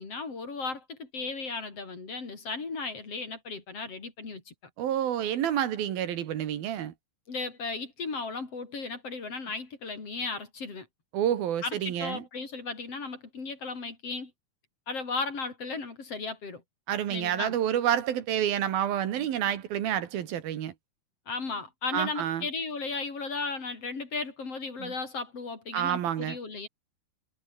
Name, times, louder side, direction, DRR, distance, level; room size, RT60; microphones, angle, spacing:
voice 1, 0.0-4.5 7.3-10.9 11.6-14.3 14.9-16.6 17.1-17.6 21.3-26.7, left 4 dB, 40° left, 4.8 m, -35 dB
voice 2, 4.8-6.9 11.1-12.2 16.9-20.7 21.9-22.5 24.8-24.9 25.7-26.4, right 10 dB, 75° right, 3.6 m, -29 dB
omnidirectional pair, 4.3 m